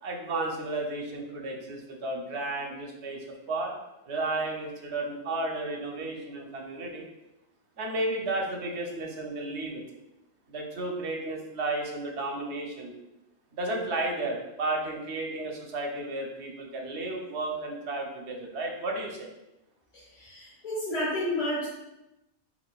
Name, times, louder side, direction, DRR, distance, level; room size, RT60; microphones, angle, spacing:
voice 1, 0.0-3.7 4.1-7.0 7.8-9.8 10.5-12.9 13.5-19.3, right 2 dB, 85° right, 1 dB, 1.1 m, -33 dB
voice 2, 19.9-21.7, left 1 dB, 40° left, -9 dB, 1.3 m, -31 dB
4.2 x 4.1 x 2.3 m, 0.93 s
omnidirectional pair, 1.1 m